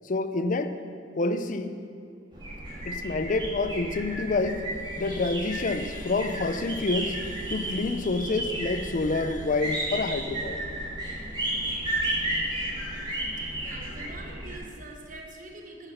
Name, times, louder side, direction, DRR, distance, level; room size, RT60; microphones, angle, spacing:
voice 1, 0.1-0.8 1.2-1.8 2.9-4.6 5.0-10.6, left 3 dB, 45° left, 9 dB, 0.5 m, -28 dB
sound 1, 2.3-14.6, right 1 dB, 25° right, 2.8 m, -33 dB
voice 2, 13.6-15.9, right 2 dB, 45° right, 2 dB, 1.2 m, -44 dB
10.0 x 6.9 x 5.7 m, 2.5 s
head